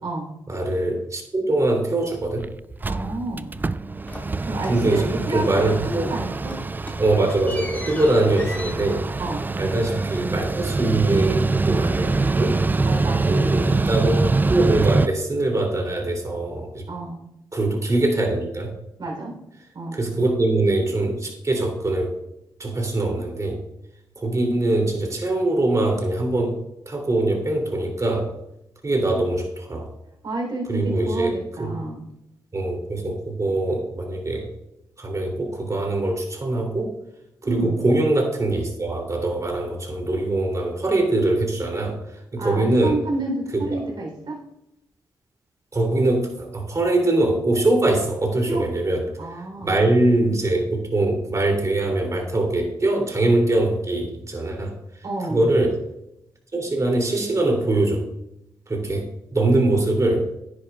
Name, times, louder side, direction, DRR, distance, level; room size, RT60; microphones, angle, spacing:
voice 1, 0.5-2.5 4.7-6.1 7.0-9.1 9.6-12.6 13.3-16.9 17.5-18.7 19.9-22.2 22.6-23.6 24.1-26.6 26.9-28.3 28.8-29.9 30.7-31.7 32.5-34.5 35.0-36.9 37.4-43.0 43.7-43.8 45.7-54.8 55.3-55.8 56.5-58.1 58.7-60.3, right 2 dB, 40° right, 2 dB, 3.0 m, -23 dB
Mechanical fan, 2.0-2.1 2.4-2.5 2.7-15.1, right 3 dB, 20° right, 0.3 m, -24 dB
voice 2, 2.8-3.5 4.5-6.6 9.2-9.4 12.9-13.5 16.9-17.2 19.0-19.3 19.7-20.0 30.2-32.0 37.4-37.8 42.4-44.4 48.5-48.6 49.2-49.7 55.0-55.5, right 2 dB, 60° right, 1 dB, 3.6 m, -29 dB
sound 1, 4.1-5.3 5.6-6.1 6.3-11.3 11.6-12.9, left 1 dB, 20° left, 2.0 m, -40 dB
10.5 x 9.8 x 2.4 m, 0.82 s
supercardioid pair, 50°, 9 cm